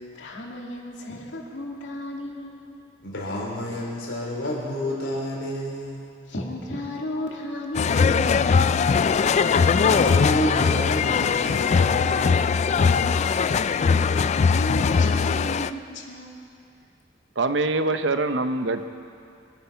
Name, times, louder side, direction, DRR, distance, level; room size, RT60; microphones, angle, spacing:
voice 1, 0.1-2.6 6.3-8.9 13.4-16.4, left 1 dB, 70° left, -1 dB, 2.4 m, -34 dB
voice 2, 3.0-6.0 9.4-12.3, left 1 dB, 90° left, -3 dB, 3.3 m, -29 dB
sound 1, 7.7-15.7, left 5 dB, 35° left, 0.3 m, -20 dB
voice 3, 17.4-18.8, right 2 dB, 70° right, 9 dB, 0.8 m, -24 dB
25.0 x 9.4 x 5.8 m, 2.5 s
head